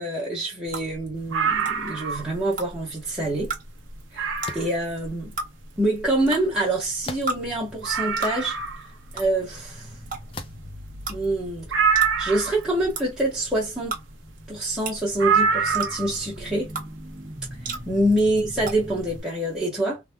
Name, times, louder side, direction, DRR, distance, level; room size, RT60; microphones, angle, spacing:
voice 1, 0.0-3.5 4.1-4.3 4.5-5.3 5.8-8.6 9.1-9.9 11.1-11.7 12.2-14.0 14.5-16.7 17.8-20.0, right 1 dB, 5° right, 1.2 m, -26 dB
sound 1, 0.7-19.2, right 3 dB, 45° right, 1.0 m, -37 dB
sound 2, 1.3-2.4 2.8-2.9 3.4-3.5 4.2-4.8 6.5-6.6 6.8-6.9 7.3-7.4 7.8-8.9 11.7-12.6 15.2-16.2 17.5-17.6, right 6 dB, 80° right, 0.7 m, -24 dB
sound 3, 4.4-4.8 7.0-7.6 8.3-8.4 10.3-10.7, left 3 dB, 30° left, 0.4 m, -37 dB
3.4 x 2.4 x 2.2 m
head